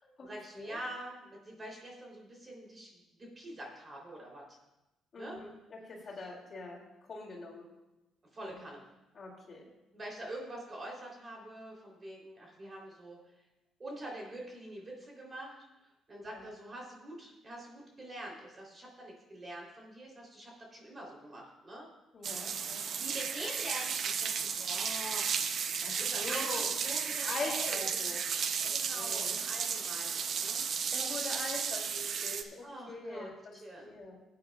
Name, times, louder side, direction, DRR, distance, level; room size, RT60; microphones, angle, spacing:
voice 1, 0.2-4.6 5.2-5.4 8.3-8.8 9.9-13.2 13.8-21.9 23.0-25.3 26.0-28.1 28.7-30.6 32.6-33.3 33.6-33.9, right 1 dB, 30° right, -2 dB, 3.3 m, -45 dB
voice 2, 5.1-6.8 7.1-7.7 8.5-8.6 9.1-9.6 16.2-16.5 22.1-22.8 25.8-26.7 27.2-28.2 28.6-29.4 30.9-34.2, left 2 dB, 45° left, -3 dB, 3.1 m, -43 dB
sound 1, 22.2-32.4, right 6 dB, 60° right, 0.7 m, -34 dB
17.0 x 9.0 x 2.4 m, 0.97 s
cardioid pair, 80°, 0 cm